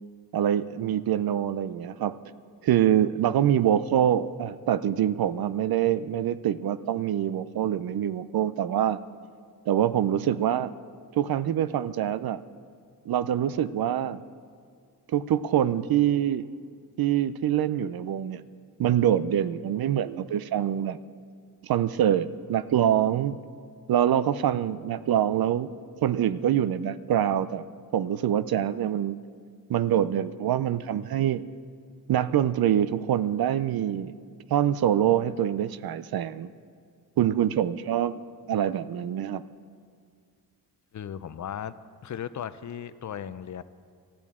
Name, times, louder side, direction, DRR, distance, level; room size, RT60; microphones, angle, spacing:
voice 1, 0.3-2.2 2.6-9.0 9.7-10.7 11.2-12.4 13.1-14.2 15.1-16.5 17.0-18.4 18.8-21.0 21.6-23.4 23.9-25.7 26.0-27.6 27.9-29.2 29.7-31.4 32.1-34.1 34.5-36.5 37.2-38.2 38.5-39.4, right 10 dB, 70° right, 16 dB, 0.5 m, -25 dB
voice 2, 40.9-41.8 42.0-43.6, left 9 dB, 50° left, 14 dB, 0.5 m, -36 dB
19.0 x 13.5 x 3.6 m, 2.1 s
wide cardioid pair, 145°, 37 cm